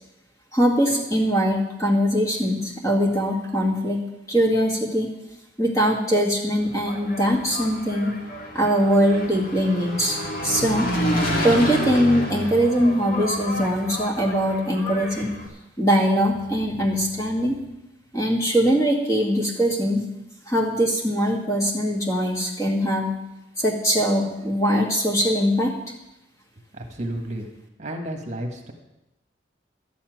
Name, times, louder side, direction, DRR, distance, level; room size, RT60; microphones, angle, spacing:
voice 1, 0.5-4.0 4.3-5.1 5.6-8.1 8.5-10.9 11.4-15.3 15.8-17.6 18.1-20.0 20.5-23.1 23.6-25.7, equal, 15° left, -1 dB, 2.1 m, -21 dB
Engine, 6.6-15.5, equal, 50° left, 2.1 m, -29 dB
voice 2, 26.8-27.5 27.8-28.7, right 1 dB, 40° right, 3 dB, 1.6 m, -31 dB
12.0 x 7.2 x 9.3 m, 0.92 s
head